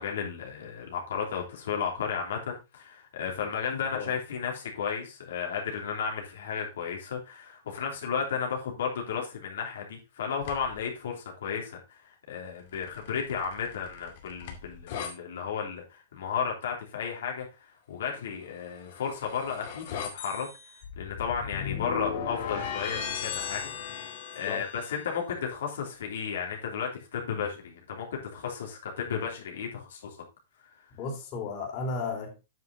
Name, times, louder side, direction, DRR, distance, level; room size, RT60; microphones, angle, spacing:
voice 1, 0.0-20.5 21.0-23.7 24.0-24.1 24.3-30.2 30.7-30.8, left 6 dB, 80° left, 0 dB, 3.2 m, -34 dB
sound 1, 10.4-10.8 12.7-15.1 18.6-25.0, left 7 dB, 55° left, 2.4 m, -37 dB
voice 2, 30.9-32.4, left 4 dB, 35° left, 1 dB, 3.3 m, -34 dB
9.2 x 6.0 x 3.8 m, 0.28 s
hypercardioid pair, 145°, 0 cm